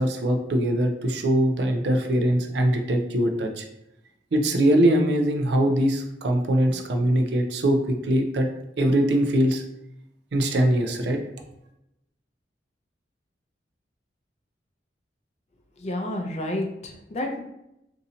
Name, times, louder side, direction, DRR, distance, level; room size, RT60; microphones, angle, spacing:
voice 1, 0.0-3.6 4.3-8.5 8.8-9.6 10.3-11.2, right 1 dB, 70° right, 4 dB, 0.5 m, -22 dB
voice 2, 15.8-17.4, left 1 dB, 35° left, 2 dB, 0.5 m, -30 dB
2.8 x 2.6 x 3.8 m, 0.85 s
head